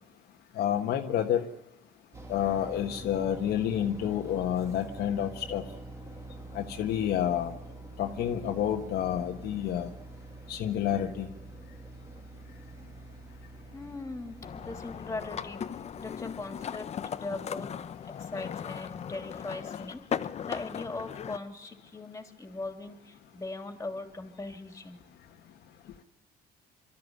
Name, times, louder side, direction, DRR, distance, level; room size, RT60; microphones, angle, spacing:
voice 1, 0.6-1.4 2.3-5.6 6.5-7.5 8.0-9.9 10.5-11.3, left 10 dB, 70° left, 3 dB, 1.5 m, -29 dB
sound 1, 2.1-17.2, right 2 dB, 15° right, 2.5 m, -46 dB
voice 2, 13.7-15.6 16.0-17.7 18.0-20.0 20.4-25.0, left 2 dB, 15° left, 5 dB, 3.2 m, -40 dB
sound 2, 14.4-21.4, left 8 dB, 40° left, 0.7 m, -38 dB
25.0 x 13.0 x 9.7 m, 1.0 s
cardioid pair, 110°, 17 cm